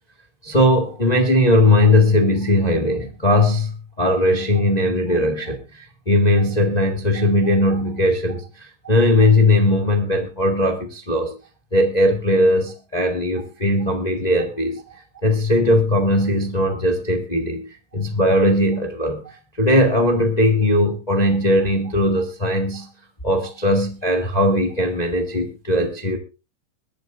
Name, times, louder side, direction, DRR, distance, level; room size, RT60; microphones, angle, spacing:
voice 1, 0.4-11.3 11.7-17.6 17.9-22.9 23.2-26.2, left 1 dB, 70° left, 3 dB, 0.4 m, -19 dB
22.0 x 13.0 x 2.5 m, 0.29 s
omnidirectional pair, 4.3 m